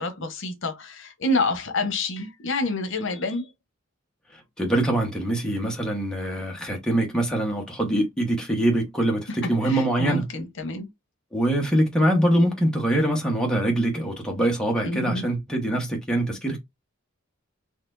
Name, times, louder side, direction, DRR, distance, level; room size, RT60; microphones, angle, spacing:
voice 1, 0.0-3.5 9.3-9.4 9.6-10.9 14.8-15.2, left 2 dB, 65° left, 1.0 m, -28 dB
voice 2, 4.3-10.2 11.3-16.6, right 1 dB, 5° left, 1.2 m, -24 dB
4.2 x 3.2 x 2.6 m
head